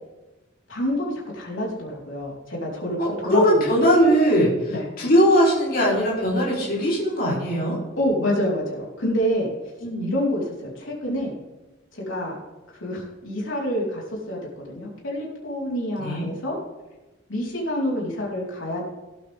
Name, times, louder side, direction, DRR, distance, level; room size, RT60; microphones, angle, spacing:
voice 1, 0.7-3.0 3.2-3.7 4.7-4.9 8.0-9.5 10.0-11.3 11.9-12.4 12.8-16.6 17.3-18.9, equal, 90° left, -3 dB, 4.3 m, -27 dB
voice 2, 3.0-4.5 5.0-7.8 9.8-10.1 16.0-16.2, equal, 50° left, -5 dB, 4.0 m, -20 dB
17.5 x 9.0 x 3.6 m, 1.1 s
head